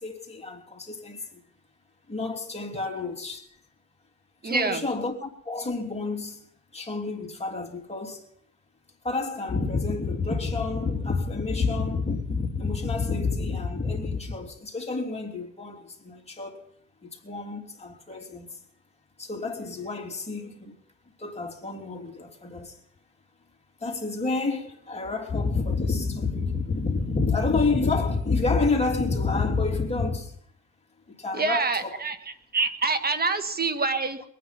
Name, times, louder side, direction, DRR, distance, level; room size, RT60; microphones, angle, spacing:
voice 1, 0.0-1.4 2.1-3.4 4.4-6.4 6.7-8.2 9.0-16.7 17.0-18.5 19.2-20.8 21.2-22.8 23.8-30.3 31.2-32.0 33.0-33.1, left 3 dB, 20° left, 3.1 m, -29 dB
voice 2, 4.4-4.8 31.3-32.2 32.5-34.2, right 4 dB, 30° right, 1.6 m, -26 dB
22.0 x 9.4 x 5.8 m
cardioid pair, 90°, 30 cm